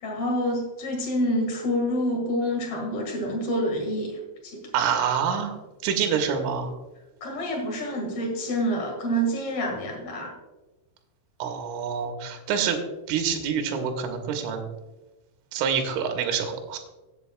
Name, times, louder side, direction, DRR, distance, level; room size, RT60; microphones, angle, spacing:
voice 1, 0.0-4.6 7.2-10.3, equal, 65° left, 0 dB, 1.5 m, -27 dB
voice 2, 4.7-5.6 5.8-6.7 11.4-12.8 13.1-14.6 15.5-16.8, right 7 dB, 80° right, 4 dB, 3.4 m, -26 dB
15.5 x 8.1 x 2.3 m, 1.1 s
omnidirectional pair, 6.0 m